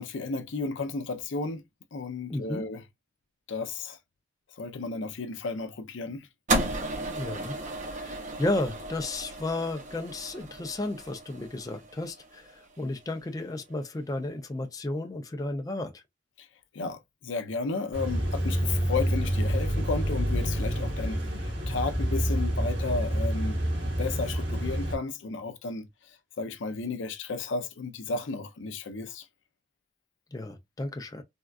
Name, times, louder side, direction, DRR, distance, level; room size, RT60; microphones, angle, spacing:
voice 1, 0.0-1.6 1.9-2.8 3.5-4.0 4.6-6.3 16.4-16.5 16.7-29.3, left 4 dB, 75° left, 0.5 m, -33 dB
voice 2, 2.3-2.6 7.2-16.0 30.3-31.2, left 2 dB, 20° left, 0.4 m, -33 dB
sound 1, 6.5-12.8, right 2 dB, 40° right, 0.7 m, -34 dB
sound 2, 17.9-24.9, equal, 65° right, 1.6 m, -28 dB
3.5 x 2.3 x 2.3 m
head